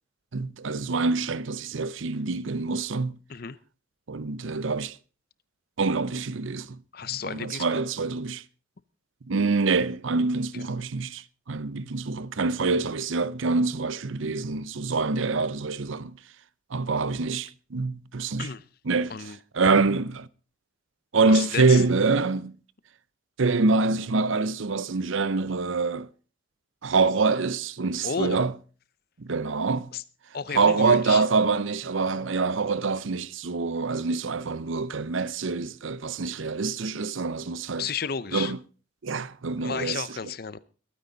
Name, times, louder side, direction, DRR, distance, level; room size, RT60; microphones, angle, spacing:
voice 1, 0.3-3.2 4.1-5.0 5.8-6.8 7.3-8.4 9.3-16.1 16.7-18.5 18.9-19.2 19.5-20.3 21.1-22.5 23.4-26.1 26.8-28.5 29.2-29.9 30.5-37.9 38.3-38.6 39.0-40.0, right 4 dB, 70° right, 0.7 m, -25 dB
voice 2, 6.9-7.8 18.4-18.6 19.1-19.4 21.3-21.8 28.0-28.4 29.9-30.0 30.3-31.2 37.8-38.5 39.6-40.6, left 6 dB, 45° left, 0.6 m, -32 dB
22.0 x 9.5 x 4.0 m
head